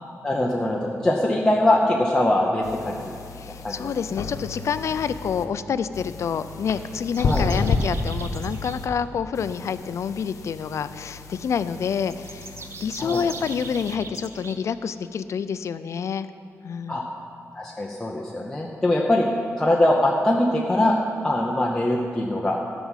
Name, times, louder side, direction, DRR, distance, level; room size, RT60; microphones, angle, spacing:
voice 1, 0.2-3.0 3.6-3.9 7.2-7.5 13.0-13.2 16.9-17.0 17.5-19.3 19.6-21.0 21.2-22.6, left 1 dB, 10° left, -3 dB, 0.8 m, -22 dB
sound 1, 2.6-5.4 5.9-8.9 9.4-13.9, left 4 dB, 85° left, 0.9 m, -32 dB
voice 2, 3.3-16.3 16.6-17.1, left 7 dB, 65° left, 13 dB, 0.4 m, -28 dB
sound 2, 7.1-8.8 12.1-14.6, right 4 dB, 50° right, 0.8 m, -40 dB
13.5 x 6.1 x 7.3 m, 2.6 s
wide cardioid pair, 170°, 5 cm